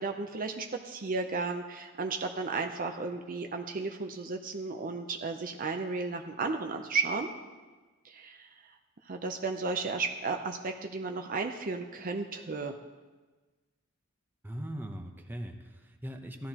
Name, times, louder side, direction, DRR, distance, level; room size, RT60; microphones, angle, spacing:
voice 1, 0.0-7.3 8.0-8.5 9.1-12.7, right 4 dB, 40° right, 4 dB, 0.6 m, -34 dB
voice 2, 14.4-16.5, equal, 10° right, 4 dB, 0.8 m, -40 dB
15.5 x 13.0 x 2.9 m, 1.3 s
head